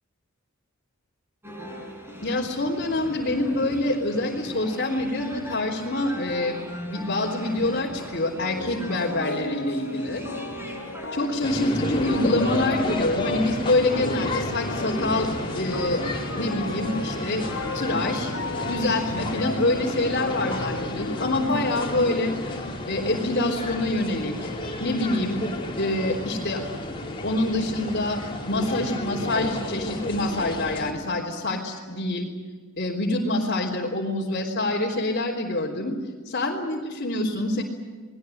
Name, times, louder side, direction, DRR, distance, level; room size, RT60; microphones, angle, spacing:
sound 1, 1.4-20.1, equal, 10° right, 7.2 m, -40 dB
voice 1, 2.2-6.6 6.9-10.2 11.1-15.3 15.5-16.0 16.3-17.5 17.7-18.3 18.6-22.4 22.9-24.5 24.8-25.4 25.8-26.6 27.2-28.2 28.5-32.3 32.8-36.0 36.3-37.6, left 2 dB, 50° left, -4 dB, 3.7 m, -26 dB
sound 2, 8.4-23.0, left 2 dB, 85° left, 2.8 m, -36 dB
sound 3, 11.4-30.9, left 1 dB, 25° left, 4.3 m, -32 dB
29.5 x 20.5 x 8.0 m, 1.5 s
head